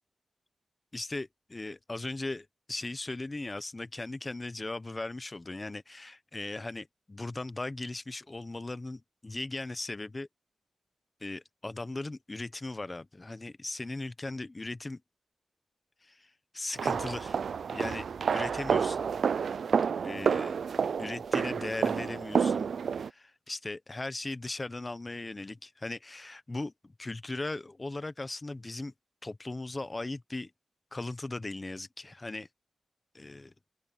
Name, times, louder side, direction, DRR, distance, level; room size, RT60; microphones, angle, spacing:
voice 1, 0.9-10.3 11.2-15.0 16.0-18.1 18.3-19.1 20.0-20.6 21.0-22.7 22.9-28.9 29.2-30.5 30.9-32.5 33.1-33.5, left 2 dB, 20° left, 0.7 m, -38 dB
sound 1, 16.8-23.1, right 6 dB, 75° right, 0.3 m, -29 dB
open air
wide cardioid pair, 155°, 0 cm